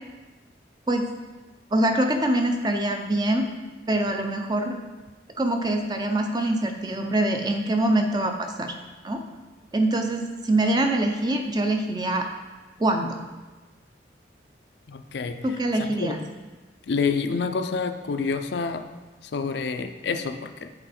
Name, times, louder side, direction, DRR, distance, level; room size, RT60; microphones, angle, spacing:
voice 1, 1.7-3.5 3.9-4.8 5.4-8.7 9.0-9.2 9.7-12.3 12.8-13.2 15.4-16.2, right 1 dB, 25° right, 4 dB, 0.5 m, -24 dB
voice 2, 14.9-15.5 15.8-16.2 16.9-18.9 19.3-20.7, left 5 dB, 70° left, 9 dB, 0.4 m, -28 dB
7.8 x 4.2 x 4.3 m, 1.3 s
head